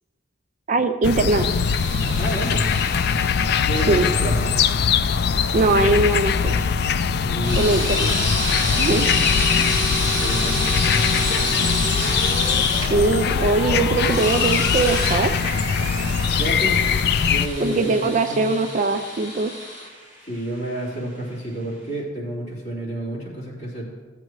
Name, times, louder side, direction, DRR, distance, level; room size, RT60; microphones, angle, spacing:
voice 1, 0.7-1.5 3.7-4.1 5.5-6.7 7.6-8.1 8.8-9.1 12.9-15.3 17.6-19.6, right 3 dB, 45° right, 8 dB, 0.4 m, -21 dB
sound 1, 1.0-17.5, left 6 dB, 60° left, 0.4 m, -21 dB
sound 2, 1.3-6.6 7.4-12.9 14.0-15.2 16.2-19.9, left 1 dB, 25° left, 2.8 m, -29 dB
voice 2, 2.2-2.7 3.6-4.5 7.2-7.7 10.0-10.8 16.4-18.5 20.2-23.9, right 1 dB, 40° left, -6 dB, 3.3 m, -30 dB
sound 3, 6.6-22.0, equal, 15° right, 3.5 m, -37 dB
15.5 x 7.7 x 3.1 m, 1.4 s
head